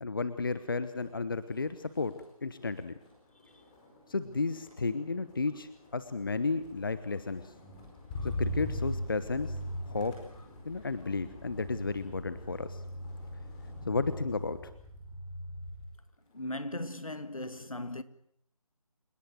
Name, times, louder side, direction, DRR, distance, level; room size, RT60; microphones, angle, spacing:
voice 1, 0.0-2.2 2.4-2.9 4.1-7.5 8.2-9.6 9.8-10.2 10.6-12.8 13.9-14.6, left 3 dB, 35° left, 1.1 m, -33 dB
Motor vehicle (road), 0.9-1.2 1.5-16.0 16.4-16.8, equal, 10° left, 4.6 m, -41 dB
voice 2, 16.3-18.0, left 1 dB, 65° left, 2.1 m, -38 dB
29.0 x 17.5 x 7.9 m
figure-of-eight pair, 160°, 19 cm